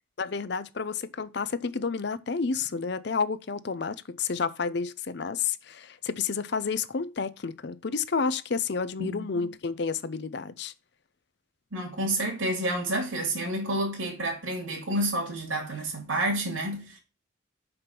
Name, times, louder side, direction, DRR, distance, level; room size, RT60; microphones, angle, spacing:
voice 1, 0.2-10.7, left 5 dB, 55° left, 0.6 m, -30 dB
voice 2, 11.7-17.0, right 1 dB, 90° right, 2.5 m, -29 dB
5.9 x 5.1 x 5.7 m
head